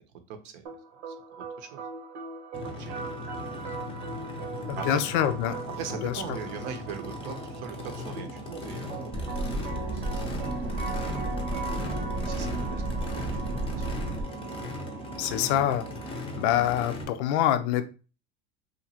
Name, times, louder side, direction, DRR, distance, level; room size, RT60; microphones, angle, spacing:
voice 1, 0.3-0.6 1.1-1.8 2.8-3.0 4.7-5.0 5.7-9.2 9.6-10.4 10.8-11.7 12.2-13.8, right 7 dB, 65° right, 7 dB, 0.7 m, -41 dB
sound 1, 0.6-16.6, right 4 dB, 85° right, 1.0 m, -40 dB
Race car auto racing / Idling / Accelerating revving vroom, 2.5-17.0, left 1 dB, 15° left, 0.6 m, -38 dB
voice 2, 4.7-5.6 6.0-6.2 15.2-17.8, left 11 dB, 70° left, 10 dB, 0.5 m, -26 dB
sound 2, 9.1-14.2, right 2 dB, 25° right, 0.6 m, -33 dB
2.8 x 2.5 x 2.7 m, 0.34 s
supercardioid pair, 100°, 34 cm